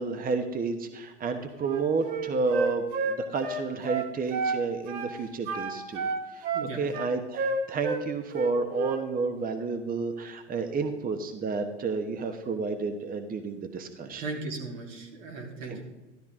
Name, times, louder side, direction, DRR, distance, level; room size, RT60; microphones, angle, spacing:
voice 1, 0.0-14.2 15.7-15.8, right 4 dB, 25° right, 7 dB, 1.2 m, -31 dB
Wind instrument woodwind instrument, 1.6-4.6 4.9-5.1 5.5-8.0 8.3-9.0, right 4 dB, 65° right, 2.3 m, -30 dB
voice 2, 14.2-15.8, right 3 dB, 80° right, 0 dB, 3.5 m, -37 dB
13.0 x 11.5 x 3.7 m, 1.1 s
hypercardioid pair, 95°, 37 cm